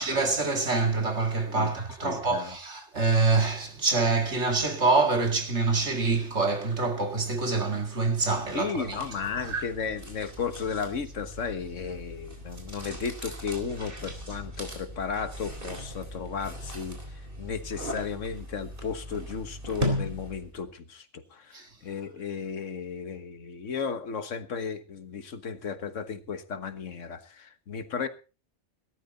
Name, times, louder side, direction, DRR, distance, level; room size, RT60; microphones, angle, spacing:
voice 1, 0.0-8.8 9.5-9.6 21.5-21.7, right 3 dB, 65° right, 2.6 m, -26 dB
voice 2, 2.0-2.6 8.5-17.0 17.4-28.1, left 6 dB, 90° left, 1.7 m, -34 dB
sound 1, 8.2-20.6, equal, 45° right, 4.0 m, -38 dB
17.0 x 13.0 x 4.1 m
omnidirectional pair, 1.2 m